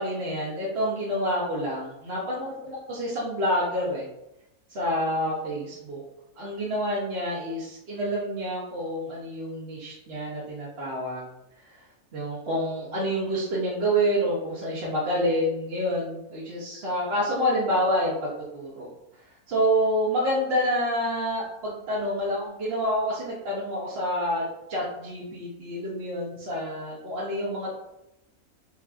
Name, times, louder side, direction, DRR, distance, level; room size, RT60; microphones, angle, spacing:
voice 1, 0.0-4.1 4.7-6.0 6.4-11.3 11.7-11.8 12.1-18.9 19.5-24.4 24.7-27.7, equal, 50° right, -6 dB, 0.9 m, -28 dB
4.7 x 2.6 x 2.4 m, 0.85 s
omnidirectional pair, 1.6 m